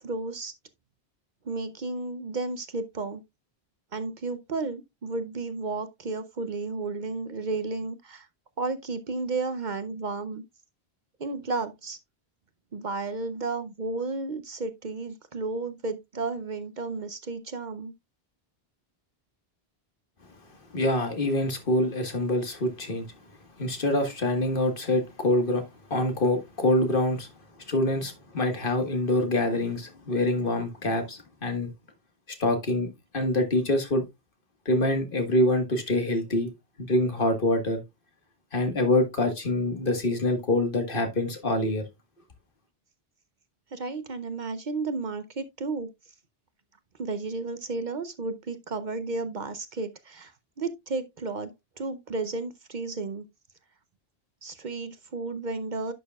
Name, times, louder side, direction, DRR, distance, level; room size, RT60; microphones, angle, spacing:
voice 1, 0.0-0.5 1.4-3.2 3.9-8.3 8.6-10.4 11.2-12.0 12.7-17.9 43.7-45.9 47.0-50.3 50.6-51.5 51.8-53.2 54.4-55.9, right 3 dB, 50° right, 0.8 m, -33 dB
voice 2, 20.7-23.0 23.6-25.6 25.9-27.3 27.7-31.7 32.4-32.9 33.1-34.0 34.6-36.5 36.8-37.8 38.5-41.8, left 1 dB, 60° left, 1.7 m, -25 dB
10.5 x 6.7 x 2.3 m
omnidirectional pair, 1.0 m